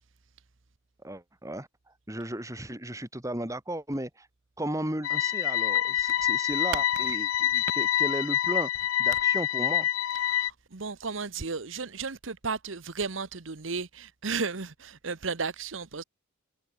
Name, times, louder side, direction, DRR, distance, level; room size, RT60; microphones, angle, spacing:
voice 1, 1.0-1.7 2.1-4.3 4.6-8.7 9.0-9.9, right 1 dB, 15° right, 5.8 m, -35 dB
sound 1, 5.0-10.5, left 11 dB, 90° left, 0.5 m, -26 dB
voice 2, 10.1-16.0, right 5 dB, 70° right, 1.1 m, -34 dB
head